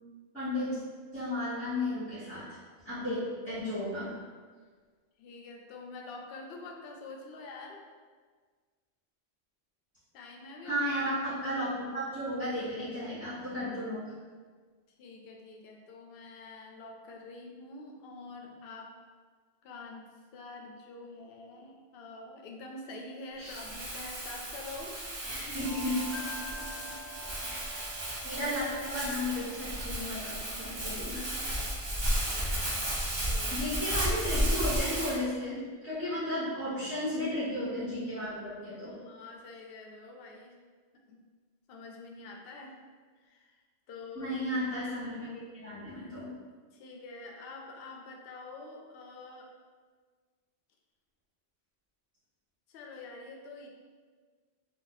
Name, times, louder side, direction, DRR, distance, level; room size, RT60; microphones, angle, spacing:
voice 1, 0.3-0.8 1.1-2.6 2.8-4.1 10.6-14.1 23.4-23.6 25.2-26.2 27.4-27.8 28.2-31.2 33.5-35.6 35.8-39.0 44.1-45.3 45.5-46.3, left 1 dB, 10° left, -15 dB, 1.1 m, -34 dB
voice 2, 5.2-7.8 10.1-10.8 15.0-18.9 19.6-20.1 20.3-25.5 26.4-27.2 27.5-27.6 31.1-31.7 32.3-33.0 33.3-33.6 38.9-40.6 40.9-41.2 41.7-42.8 43.2-43.5 43.9-44.3 46.7-49.5 52.7-53.7, left 3 dB, 65° left, 1 dB, 0.7 m, -46 dB
Crumpling crinkling, 23.5-35.2, right 1 dB, 35° right, 0.5 m, -34 dB
sound 1, 25.6-30.9, left 1 dB, 50° right, 1.0 m, -47 dB
2.7 x 2.3 x 3.8 m, 1.5 s
omnidirectional pair, 1.1 m